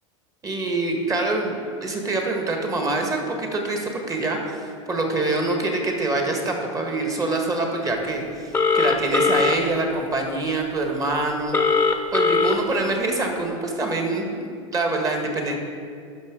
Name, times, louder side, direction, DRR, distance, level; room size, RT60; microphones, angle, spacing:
voice 1, 0.4-11.6 12.1-15.5, right 2 dB, 20° right, 2 dB, 1.6 m, -25 dB
Telephone, 8.5-9.6 11.5-12.5, left 3 dB, 10° left, 0.9 m, -19 dB
10.5 x 5.7 x 4.8 m, 2.2 s
hypercardioid pair, 110°, 17 cm